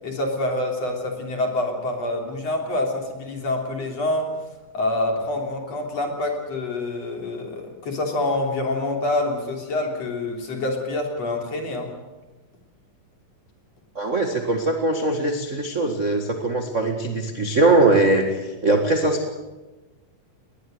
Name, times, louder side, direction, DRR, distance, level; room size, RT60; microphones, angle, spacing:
voice 1, 0.0-4.3 4.7-11.9, left 2 dB, 45° left, 2 dB, 4.2 m, -26 dB
voice 2, 13.9-19.3, right 2 dB, 35° right, 4 dB, 1.2 m, -21 dB
21.0 x 20.0 x 7.9 m, 1.2 s
omnidirectional pair, 4.3 m